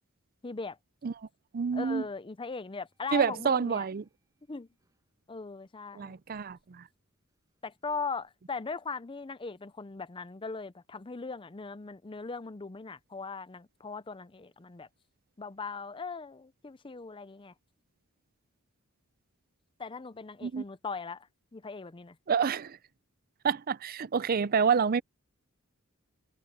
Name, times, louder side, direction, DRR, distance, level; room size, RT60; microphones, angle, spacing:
voice 1, 0.4-0.8 1.7-3.9 4.5-4.7 5.3-6.1 7.6-14.9 15.4-17.5 19.8-21.3 21.5-22.2, left 4 dB, 25° left, 0.5 m, -39 dB
voice 2, 1.5-2.0 3.1-4.0 6.0-6.8 20.4-20.6 22.3-22.8 23.4-25.0, right 6 dB, 40° right, 0.5 m, -28 dB
sound 1, 2.6-5.4 5.9-8.3, right 2 dB, 15° right, 7.9 m, -77 dB
head